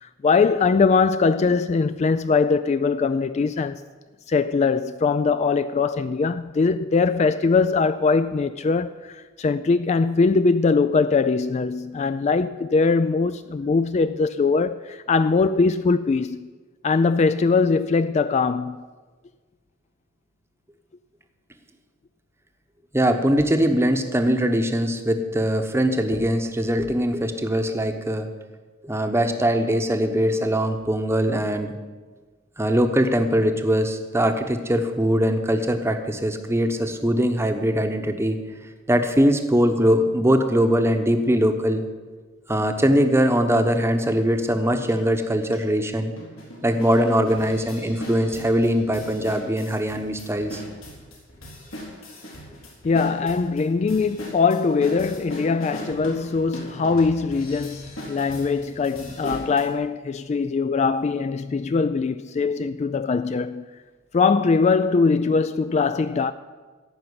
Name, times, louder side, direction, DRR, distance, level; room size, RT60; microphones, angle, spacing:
voice 1, 0.0-3.8 4.3-16.5 16.8-18.9 52.8-63.6 64.1-66.3, left 4 dB, 35° left, 0.3 m, -21 dB
voice 2, 22.9-28.3 28.8-31.7 32.6-38.4 38.9-41.8 42.5-46.1 46.6-50.6 59.2-59.4, equal, 10° right, 0.9 m, -21 dB
sound 1, 44.9-45.0 45.5-45.6 46.2-59.6, left 1 dB, 85° left, 3.8 m, -39 dB
14.5 x 5.8 x 9.6 m
head